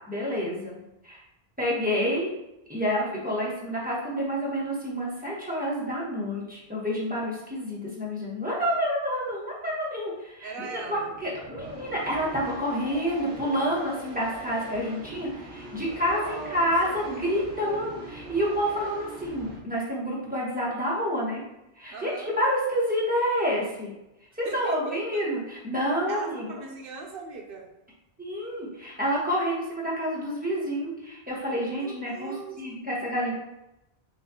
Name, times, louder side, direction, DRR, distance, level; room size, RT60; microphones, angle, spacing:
voice 1, 0.1-0.8 1.0-1.2 1.6-2.3 2.7-21.4 21.8-23.9 24.4-26.5 28.2-33.3, equal, 10° right, -6 dB, 1.1 m, -28 dB
voice 2, 10.4-11.1 16.0-17.9 21.9-22.3 24.4-25.2 26.1-27.7 31.7-32.6, right 4 dB, 65° right, 1 dB, 0.9 m, -40 dB
sound 1, 10.6-19.6, right 1 dB, 75° left, 1.7 m, -43 dB
5.9 x 2.5 x 2.8 m, 0.89 s
omnidirectional pair, 1.1 m